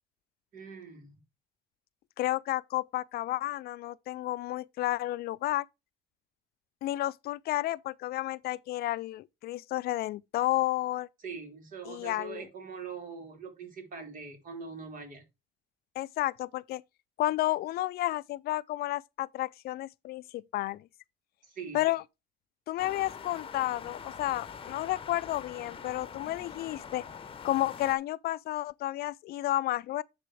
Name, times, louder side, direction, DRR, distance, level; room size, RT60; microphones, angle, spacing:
voice 1, 0.5-1.1 11.2-15.2 21.4-21.8, right 5 dB, 50° right, 3.5 m, -42 dB
voice 2, 2.2-5.6 6.8-11.1 11.9-12.5 16.0-16.8 17.2-20.8 21.7-22.0 22.7-27.0 27.4-30.0, left 16 dB, 65° left, 0.4 m, -31 dB
sound 1, 22.8-28.0, left 6 dB, 30° left, 0.9 m, -44 dB
9.9 x 4.2 x 4.8 m
cardioid pair, 110°, 17 cm